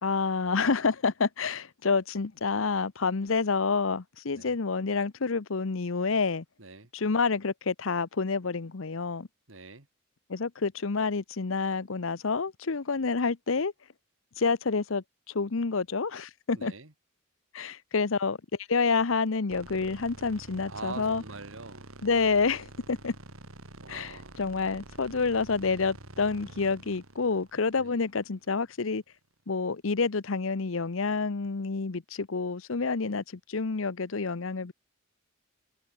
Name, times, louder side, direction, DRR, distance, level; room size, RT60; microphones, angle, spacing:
voice 1, 0.0-6.4 6.9-9.3 10.3-13.7 14.4-16.7 17.5-18.4 18.7-21.2 22.0-23.1 23.9-29.0 29.5-34.7, left 4 dB, 70° left, 0.8 m, -28 dB
voice 2, 6.6-6.9 9.5-9.9 16.6-16.9 20.6-21.9 23.8-24.4 27.8-27.9, right 3 dB, 65° right, 2.5 m, -43 dB
sound 1, 19.5-28.7, right 2 dB, 85° right, 4.3 m, -48 dB
head